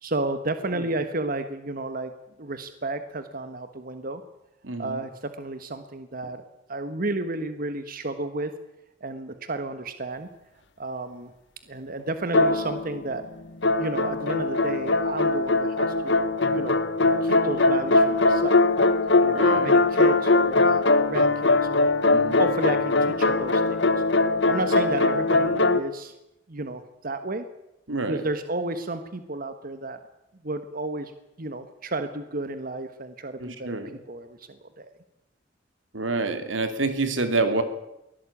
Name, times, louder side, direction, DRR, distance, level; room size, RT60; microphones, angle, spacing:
voice 1, 0.0-2.1 2.4-4.2 4.8-6.4 6.7-8.5 9.0-10.3 10.8-11.3 11.7-13.2 13.8-16.8 17.2-18.7 19.2-21.9 22.4-23.8 24.5-26.1 26.5-27.4 28.1-30.0 30.4-31.1 31.4-33.8 34.1-34.9, right 2 dB, 50° right, 9 dB, 1.4 m, -32 dB
voice 2, 4.6-5.0 19.3-19.8 22.1-22.4 27.9-28.2 33.4-33.9 35.9-37.6, right 3 dB, 90° right, 8 dB, 2.8 m, -27 dB
sound 1, 12.3-13.2 13.6-25.8, left 3 dB, 65° left, 1.3 m, -21 dB
23.0 x 17.0 x 8.6 m, 0.89 s
head